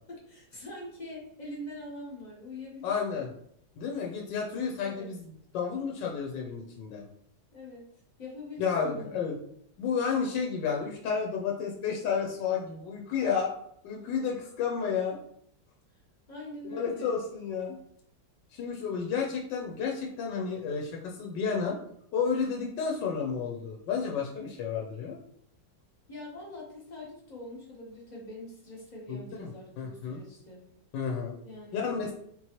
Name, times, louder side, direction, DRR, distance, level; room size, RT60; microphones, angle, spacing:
voice 1, 0.1-3.2 4.7-5.1 7.5-7.9 8.2-9.2 15.9-16.0 16.3-17.2 26.1-30.6 31.4-32.1, left 2 dB, 35° left, -3 dB, 0.8 m, -44 dB
voice 2, 2.8-3.3 3.8-7.0 8.6-9.3 9.8-13.5 13.8-15.2 16.6-17.8 18.5-21.8 22.1-25.2 29.1-29.5 29.8-30.2 30.9-31.4 31.7-32.1, left 6 dB, 85° left, 0 dB, 1.3 m, -31 dB
4.1 x 3.0 x 2.9 m, 0.68 s
omnidirectional pair, 1.9 m